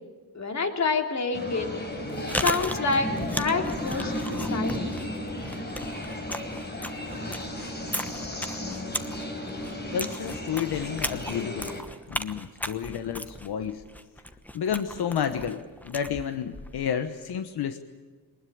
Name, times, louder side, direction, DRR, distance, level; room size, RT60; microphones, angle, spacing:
voice 1, 0.3-1.7 2.3-3.1 3.4-4.1 4.4-4.9, left 4 dB, 45° left, 5 dB, 2.9 m, -27 dB
sound 1, 1.3-11.8, left 1 dB, 25° left, 4.3 m, -34 dB
Chewing mastication, 1.9-17.0, equal, 5° left, 1.1 m, -37 dB
voice 2, 9.9-11.7 12.1-13.8 14.5-17.8, left 8 dB, 80° left, 9 dB, 1.2 m, -31 dB
23.0 x 20.5 x 8.6 m, 1.5 s
wide cardioid pair, 140°, 38 cm